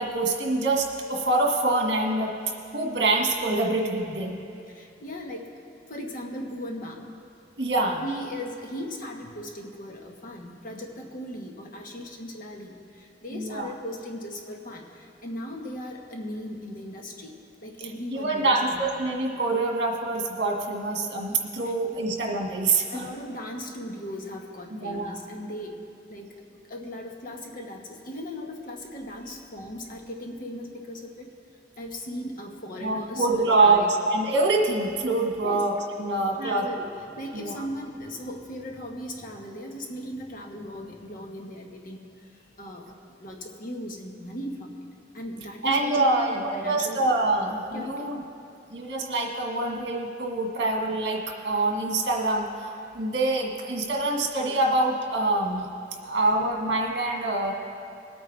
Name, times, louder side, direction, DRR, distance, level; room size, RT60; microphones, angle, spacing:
voice 1, 0.0-4.4 7.6-8.0 13.3-13.7 18.1-23.1 24.7-25.2 32.8-36.7 37.3-37.7 45.6-48.2 48.7-55.7 56.0-57.5, right 2 dB, 70° right, 0 dB, 1.7 m, -25 dB
voice 2, 4.7-5.5 5.9-7.1 8.0-17.3 17.6-18.8 22.9-25.8 26.1-26.3 26.7-31.3 31.8-33.9 35.4-35.6 36.4-36.9 37.2-42.0 42.6-42.9 43.2-44.8 45.1-47.1 47.7-48.1, equal, 50° left, 1 dB, 1.3 m, -37 dB
21.5 x 8.8 x 3.4 m, 2.6 s
head